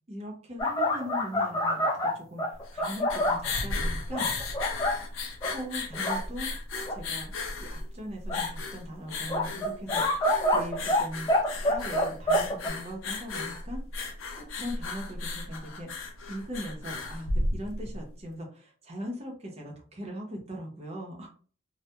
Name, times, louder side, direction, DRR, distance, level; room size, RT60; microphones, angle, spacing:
voice 1, 0.1-1.9 2.1-2.4 2.7-4.3 5.5-6.5 6.9-7.3 7.6-11.3 11.7-13.8 14.4-15.9 16.3-21.3, equal, 30° right, 0 dB, 0.6 m, -39 dB
sound 1, 0.6-3.5 4.1-5.0 5.4-5.5 5.9-6.2 6.9-7.0 8.3-8.5 9.3-11.0 11.3-12.7, left 1 dB, 20° left, 0.3 m, -26 dB
sound 2, 2.5-18.0, left 3 dB, 85° left, 0.5 m, -35 dB
2.2 x 2.0 x 2.7 m, 0.42 s
head